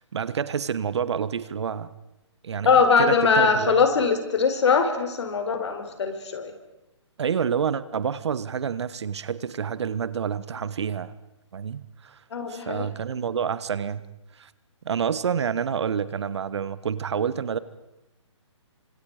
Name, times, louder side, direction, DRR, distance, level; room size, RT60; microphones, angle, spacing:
voice 1, 0.0-1.9 2.4-2.7 3.0-3.8 7.2-11.1 11.5-12.2 12.5-14.0 14.4-14.5 14.8-17.6, right 7 dB, 65° right, 16 dB, 1.4 m, -28 dB
voice 2, 2.6-6.5 12.3-12.9, left 5 dB, 65° left, 7 dB, 4.6 m, -21 dB
29.5 x 26.0 x 5.0 m, 0.94 s
hypercardioid pair, 150°, 16 cm